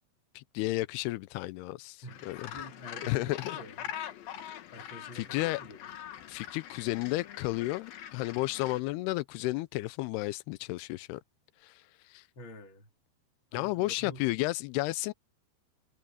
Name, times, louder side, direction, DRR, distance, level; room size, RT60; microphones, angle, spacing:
voice 1, 0.4-2.5 3.1-3.6 5.1-5.6 6.3-11.2 11.6-11.7 12.1-12.2 13.5-15.1, left 19 dB, 90° left, 2.3 m, -32 dB
voice 2, 2.0-3.9 4.7-5.9 12.3-12.9 13.5-14.2, left 1 dB, 30° left, 3.8 m, -47 dB
Gull seagull, 2.1-8.8, left 10 dB, 60° left, 2.9 m, -43 dB
omnidirectional pair, 5.2 m